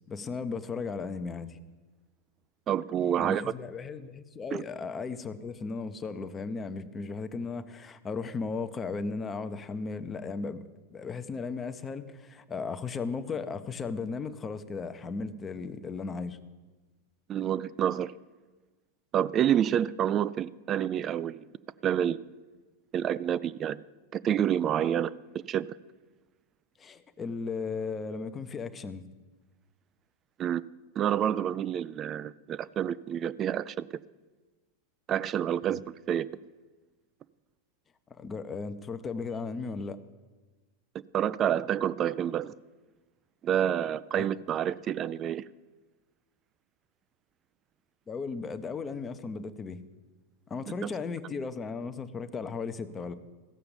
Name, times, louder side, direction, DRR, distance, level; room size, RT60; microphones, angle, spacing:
voice 1, 0.1-1.6 3.2-10.6 10.9-16.4 26.8-29.0 35.7-35.8 38.2-40.0 44.1-44.3 48.1-49.8 50.5-53.1, left 4 dB, 20° left, 10 dB, 0.7 m, -36 dB
voice 2, 2.7-3.4 4.5-4.6 17.3-18.1 19.1-21.4 21.8-22.2 22.9-23.8 24.1-25.7 30.4-30.6 31.0-33.9 35.1-36.3 41.1-42.5 43.4-45.4 50.8-50.9, right 10 dB, 30° right, 18 dB, 0.3 m, -28 dB
15.0 x 6.8 x 7.1 m, 1.2 s
figure-of-eight pair, 90°, 0 cm